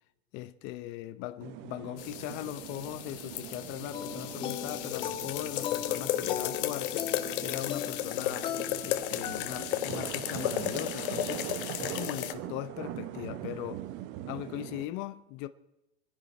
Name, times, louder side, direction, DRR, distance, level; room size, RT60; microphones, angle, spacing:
voice 1, 0.3-13.9 14.3-15.5, left 15 dB, 35° left, 0.8 m, -40 dB
sound 1, 1.4-14.9, right 13 dB, 35° right, 0.9 m, -42 dB
sound 2, 2.0-12.3, left 13 dB, 55° left, 1.3 m, -34 dB
sound 3, 3.9-9.8, left 10 dB, 15° left, 0.4 m, -39 dB
25.5 x 10.5 x 4.2 m
hypercardioid pair, 125°, 32 cm